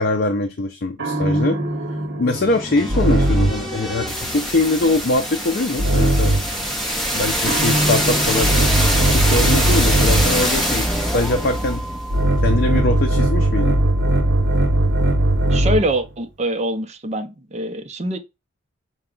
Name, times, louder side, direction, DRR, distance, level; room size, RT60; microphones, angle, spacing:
voice 1, 0.0-1.6 2.2-6.3 7.1-8.6 9.1-11.8 12.4-13.8, left 2 dB, 50° left, 0.5 m, -22 dB
sound 1, 1.0-3.7 5.8-6.6 7.5-10.4 12.1-16.0, right 1 dB, 60° right, 0.9 m, -19 dB
sound 2, 2.3-14.2, equal, ahead, 0.9 m, -24 dB
voice 2, 15.5-18.2, right 1 dB, 35° right, 0.6 m, -24 dB
5.7 x 2.2 x 3.7 m
head